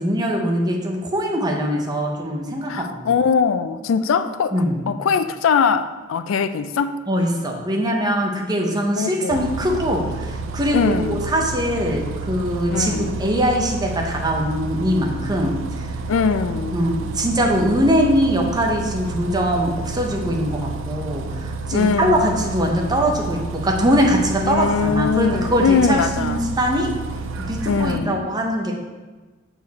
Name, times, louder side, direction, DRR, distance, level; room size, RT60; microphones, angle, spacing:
voice 1, 0.0-3.1 4.5-4.8 7.1-15.9 16.7-26.9 27.5-28.7, equal, 20° right, 1 dB, 0.8 m, -22 dB
voice 2, 2.7-7.0 9.0-9.4 10.7-11.2 12.7-13.2 16.1-16.8 21.7-22.4 24.5-26.4 27.7-28.3, left 5 dB, 85° left, 11 dB, 0.4 m, -21 dB
Bus, 9.3-28.0, right 3 dB, 70° right, 0.4 m, -30 dB
6.6 x 4.5 x 4.1 m, 1.3 s
head